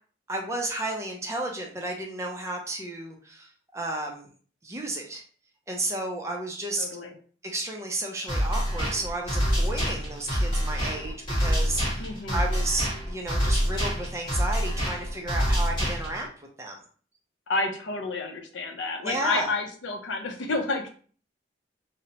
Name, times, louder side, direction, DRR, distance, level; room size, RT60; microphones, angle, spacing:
voice 1, 0.3-4.3 4.6-5.2 5.7-6.9 7.4-16.3 16.6-16.8 19.0-19.5, right 2 dB, 15° right, 1 dB, 0.4 m, -32 dB
voice 2, 6.8-7.1 12.0-12.5 17.5-20.9, left 3 dB, 75° left, 3 dB, 0.5 m, -30 dB
sound 1, 8.3-16.3, equal, 25° left, 1.2 m, -26 dB
2.8 x 2.0 x 2.8 m, 0.43 s
head